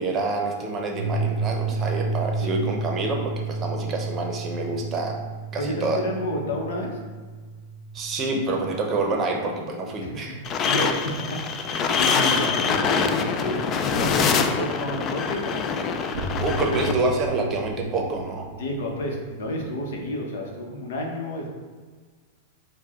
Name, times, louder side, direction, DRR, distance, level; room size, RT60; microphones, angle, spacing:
voice 1, 0.0-5.1 5.5-6.0 7.9-10.4 11.7-11.8 12.4-12.5 16.2-18.5, right 3 dB, 25° right, 1 dB, 0.7 m, -27 dB
sound 1, 1.0-10.3 11.2-11.3 16.1-20.0, right 4 dB, 85° right, 0.5 m, -32 dB
voice 2, 5.6-7.0 8.5-8.6 10.0-10.4 10.6-16.0 16.6-17.0 18.6-21.5, left 1 dB, 75° left, 1 dB, 0.9 m, -30 dB
sound 2, 10.4-16.9, left 6 dB, 30° left, 0.3 m, -24 dB
4.6 x 2.2 x 3.6 m, 1.5 s
supercardioid pair, 135°, 0 cm